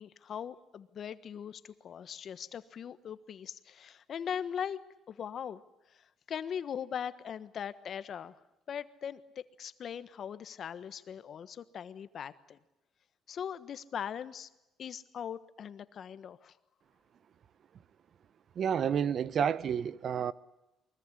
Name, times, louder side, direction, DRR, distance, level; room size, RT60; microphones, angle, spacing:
voice 1, 0.0-4.8 5.1-5.6 5.9-8.3 8.7-12.6 13.3-14.5 14.8-16.6, left 8 dB, 50° left, 1.3 m, -40 dB
voice 2, 18.6-20.3, right 8 dB, 50° right, 0.9 m, -30 dB
23.5 x 22.0 x 10.0 m
cardioid pair, 115°, 0 cm